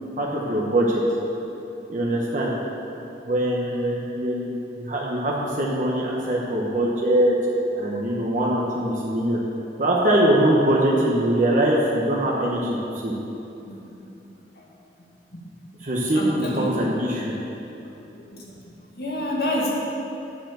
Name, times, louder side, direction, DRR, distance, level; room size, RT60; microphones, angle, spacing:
voice 1, 0.2-1.0 1.9-2.5 3.3-4.5 4.8-7.4 7.8-9.4 9.8-13.1 15.8-17.3, right 1 dB, 45° right, -4 dB, 1.1 m, -22 dB
voice 2, 16.1-16.7 18.3-18.4 18.9-19.7, left 1 dB, 60° left, -4 dB, 2.0 m, -28 dB
9.4 x 7.0 x 7.5 m, 3.0 s
head